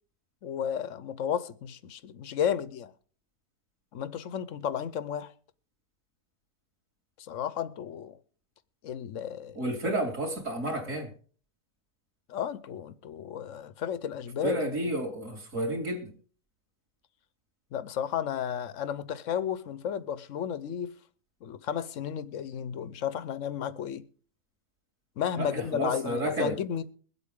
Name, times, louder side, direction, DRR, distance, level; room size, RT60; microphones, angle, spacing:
voice 1, 0.4-2.9 3.9-5.3 7.3-8.1 8.8-9.6 12.3-14.6 17.7-20.9 21.4-24.0 25.2-26.8, left 9 dB, 60° left, 0.9 m, -33 dB
voice 2, 9.6-11.1 14.4-16.1 25.4-26.5, right 1 dB, 45° right, 2.9 m, -31 dB
22.5 x 8.1 x 3.6 m
omnidirectional pair, 1.8 m